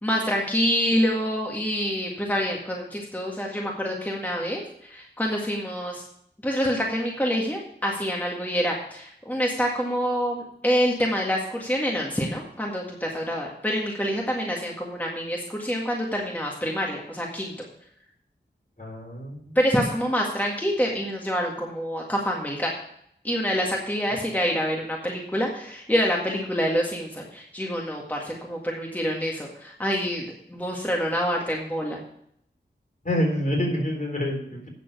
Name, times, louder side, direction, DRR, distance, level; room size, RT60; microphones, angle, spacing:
voice 1, 0.0-6.0 6.4-17.5 19.6-22.7 23.2-32.0, equal, 10° left, -2 dB, 1.9 m, -26 dB
voice 2, 18.8-19.6 33.0-34.7, equal, 45° left, 0 dB, 3.8 m, -27 dB
9.1 x 6.9 x 6.7 m, 0.70 s
wide cardioid pair, 70°, 19 cm